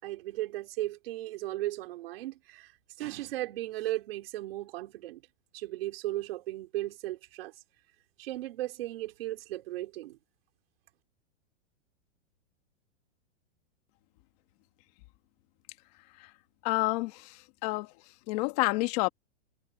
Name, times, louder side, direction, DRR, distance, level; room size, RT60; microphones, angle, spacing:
voice 1, 0.0-2.7 3.0-5.2 5.5-7.5 8.2-10.2, right 16 dB, 55° right, 4.4 m, -36 dB
voice 2, 16.6-17.9 18.3-19.1, left 22 dB, 35° left, 1.7 m, -29 dB
supercardioid pair, 165°, 36 cm